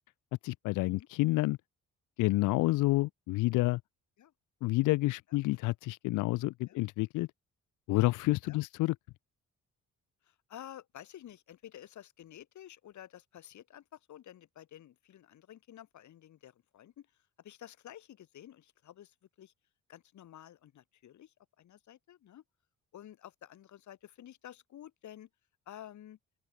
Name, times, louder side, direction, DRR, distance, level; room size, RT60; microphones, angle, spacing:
voice 1, 0.4-1.6 2.2-3.8 4.6-7.3 7.9-8.9, left 20 dB, 90° left, 0.5 m, -29 dB
voice 2, 10.2-17.1 17.4-19.5 19.9-22.4 22.9-25.3 25.7-26.2, left 11 dB, 70° left, 3.5 m, -51 dB
open air
cardioid pair, 90°, 30 cm